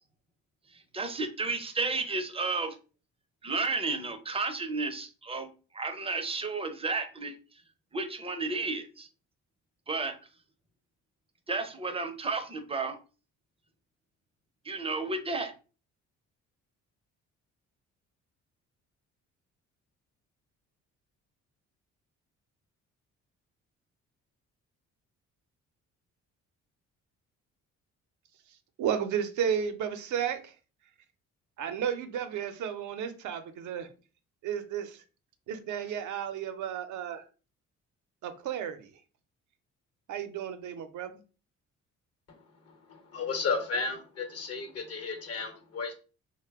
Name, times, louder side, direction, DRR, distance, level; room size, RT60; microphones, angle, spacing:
voice 1, 0.7-2.8 3.4-5.5 5.7-7.3 7.9-9.1 9.9-10.1 11.5-13.0 14.6-15.5, right 3 dB, 20° right, 7 dB, 0.5 m, -32 dB
voice 2, 28.8-30.5 31.6-33.9 34.4-35.0 35.5-37.3 38.2-38.9 40.1-41.2, right 8 dB, 75° right, 8 dB, 0.6 m, -33 dB
voice 3, 42.9-45.9, left 4 dB, 55° left, 6 dB, 0.9 m, -33 dB
2.9 x 2.1 x 3.3 m, 0.35 s
cardioid pair, 90°, 30 cm